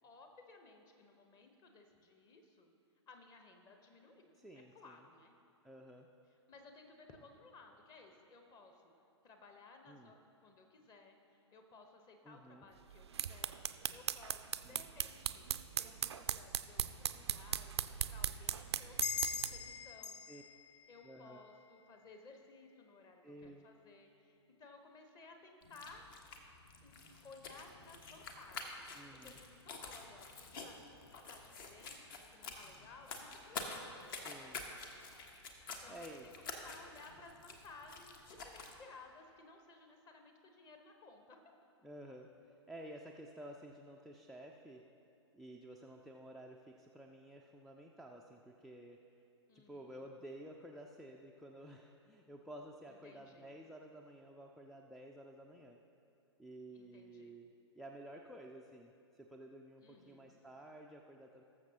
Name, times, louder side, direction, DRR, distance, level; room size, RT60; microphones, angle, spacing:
voice 1, 0.0-2.7 3.1-5.4 6.5-8.9 9.2-15.4 15.8-20.2 20.9-26.1 26.8-26.9 27.2-34.3 35.7-41.4 49.5-50.1 52.9-53.6 56.7-57.4 59.8-60.4, left 3 dB, 25° left, 4 dB, 1.0 m, -59 dB
voice 2, 4.4-5.0 5.6-6.1 9.9-10.1 12.2-12.7 14.6-14.9 20.3-20.4 21.0-21.4 23.2-23.7 28.9-29.4 34.2-34.6 35.9-36.3 41.8-44.8 45.3-49.0 49.5-55.8 56.4-61.4, right 1 dB, ahead, -1 dB, 0.3 m, -53 dB
sound 1, 12.9-19.7, right 8 dB, 65° right, 0.4 m, -39 dB
sound 2, 19.0-22.1, left 6 dB, 75° left, 0.4 m, -42 dB
sound 3, 25.6-38.8, left 4 dB, 50° left, 1.1 m, -49 dB
19.0 x 7.1 x 2.9 m, 2.7 s
figure-of-eight pair, 110°, 15 cm